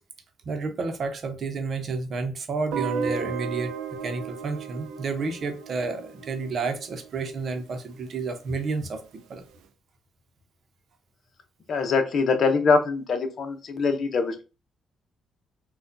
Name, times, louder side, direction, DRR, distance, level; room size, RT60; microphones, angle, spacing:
voice 1, 0.4-3.7 4.0-9.0 9.3-9.4, right 4 dB, 50° right, 0.8 m, -30 dB
Guitar, 2.7-7.6, right 7 dB, 85° right, 0.5 m, -34 dB
voice 2, 11.7-14.4, left 4 dB, 55° left, 0.8 m, -23 dB
4.2 x 2.4 x 2.6 m
cardioid pair, 90°, 0 cm